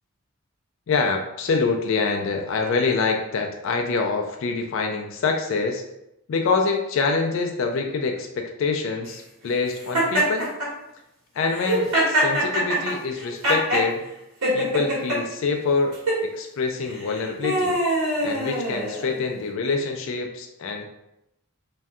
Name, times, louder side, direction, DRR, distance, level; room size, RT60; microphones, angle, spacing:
voice 1, 0.9-5.8 6.3-10.5 11.4-14.0 14.5-17.8 18.2-20.9, left 4 dB, 60° left, 3 dB, 0.3 m, -25 dB
Laughter, 9.9-10.7 11.5-13.9 14.4-15.2 15.9-16.2 16.9-19.2, right 1 dB, 90° right, 1.3 m, -23 dB
2.6 x 2.2 x 3.5 m, 0.86 s
head